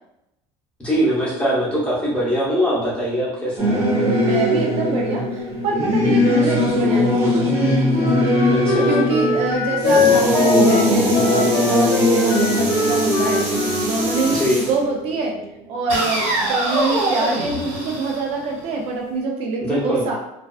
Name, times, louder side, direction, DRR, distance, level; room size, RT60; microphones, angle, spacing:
voice 1, 0.8-3.8 8.5-8.9 14.3-14.6 19.6-20.0, equal, 10° left, -6 dB, 0.7 m, -22 dB
Singing / Musical instrument, 3.6-15.4, left 1 dB, 25° right, 0.8 m, -20 dB
voice 2, 4.1-7.5 8.8-15.4 15.7-20.2, right 3 dB, 55° right, 0 dB, 0.4 m, -25 dB
Wind instrument woodwind instrument, 7.9-14.5, left 4 dB, 55° left, 0.5 m, -23 dB
sound 1, 9.8-14.8 15.9-18.8, right 1 dB, 80° right, 1.1 m, -26 dB
2.3 x 2.3 x 2.3 m, 0.85 s
cardioid pair, 155°, 12 cm